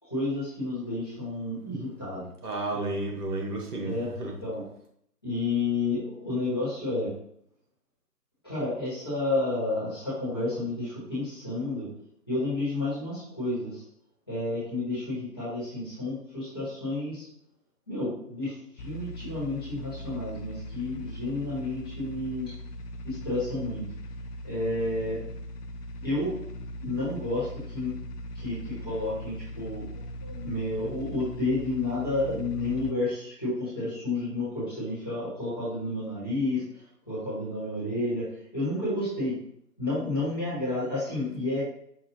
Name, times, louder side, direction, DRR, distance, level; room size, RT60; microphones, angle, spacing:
voice 1, 0.0-2.3 2.7-2.9 3.8-4.6 5.2-7.1 8.4-11.9 12.3-13.8 14.3-17.2 17.9-22.5 23.0-23.8 24.4-25.2 26.0-26.4 26.8-28.0 28.3-36.7 37.1-38.2 38.5-39.4 39.8-41.6, left 2 dB, 15° left, -12 dB, 1.2 m, -31 dB
voice 2, 2.4-4.3, right 2 dB, 70° right, 0 dB, 1.3 m, -32 dB
sound 1, 18.8-32.9, left 1 dB, 75° left, 0.6 m, -40 dB
5.5 x 2.3 x 2.7 m, 0.67 s
figure-of-eight pair, 165°, 47 cm